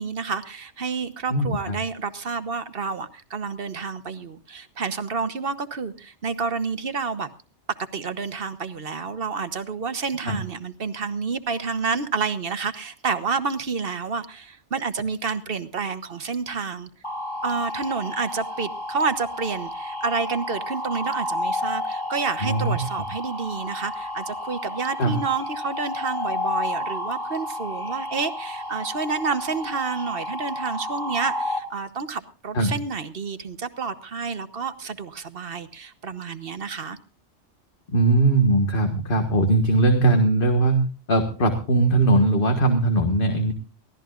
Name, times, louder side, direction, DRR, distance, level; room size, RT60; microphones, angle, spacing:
voice 1, 0.0-7.3 7.7-16.9 17.4-37.0, right 5 dB, 50° right, 11 dB, 1.2 m, -29 dB
voice 2, 1.3-1.8 10.3-10.4 22.4-22.8 25.0-25.1 32.5-32.7 37.9-40.8 41.1-43.5, right 2 dB, 45° left, 5 dB, 1.7 m, -20 dB
sound 1, 17.0-31.6, left 1 dB, 25° left, 3.5 m, -31 dB
23.0 x 16.0 x 2.5 m, 0.36 s
omnidirectional pair, 1.2 m